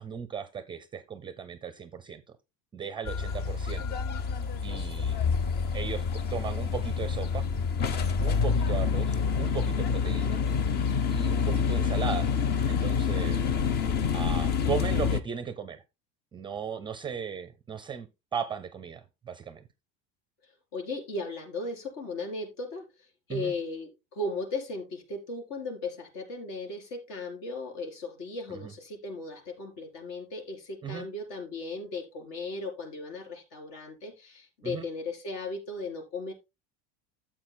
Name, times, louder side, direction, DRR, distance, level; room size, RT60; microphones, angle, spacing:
voice 1, 0.0-2.2 2.7-3.8 4.6-5.2 5.7-7.5 8.2-10.4 11.1-12.3 12.7-13.4 14.1-15.8 16.3-19.6 23.3-23.5 28.5-28.7 30.8-31.1 34.6-34.9, right 7 dB, 15° right, 0.6 m, -36 dB
sound 1, 3.0-15.2, left 6 dB, 30° left, 0.6 m, -27 dB
voice 2, 20.4-36.3, left 2 dB, 60° left, 4.1 m, -37 dB
13.5 x 7.6 x 2.2 m
cardioid pair, 165°, 31 cm